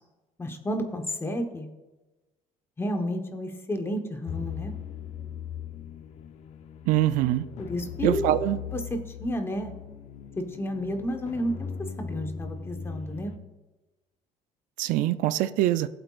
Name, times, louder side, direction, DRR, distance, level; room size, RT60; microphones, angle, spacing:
voice 1, 0.4-1.7 2.8-4.7 7.6-8.2 8.7-9.7 10.4-11.7 12.0-13.3, equal, 20° left, 5 dB, 1.1 m, -31 dB
sound 1, 4.3-13.4, left 7 dB, 60° left, 0.7 m, -39 dB
voice 2, 6.9-7.5 8.0-8.6 14.8-15.9, right 14 dB, 80° right, 13 dB, 0.4 m, -24 dB
16.0 x 7.9 x 2.5 m, 1.1 s
cardioid pair, 115°, 13 cm